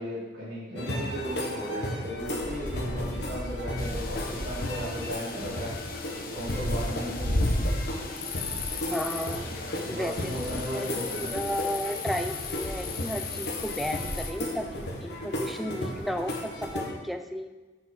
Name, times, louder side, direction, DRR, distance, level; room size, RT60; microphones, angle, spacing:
voice 1, 0.0-5.8 6.3-7.5 9.8-11.3, equal, 60° right, -11 dB, 2.2 m, -36 dB
sound 1, 0.8-16.9, left 1 dB, 70° left, 1.1 m, -33 dB
sound 2, 3.8-14.3, left 6 dB, 50° left, 0.7 m, -39 dB
voice 2, 8.9-9.5 9.9-17.5, equal, ahead, 7 dB, 0.4 m, -33 dB
5.7 x 5.0 x 6.3 m, 1.2 s
head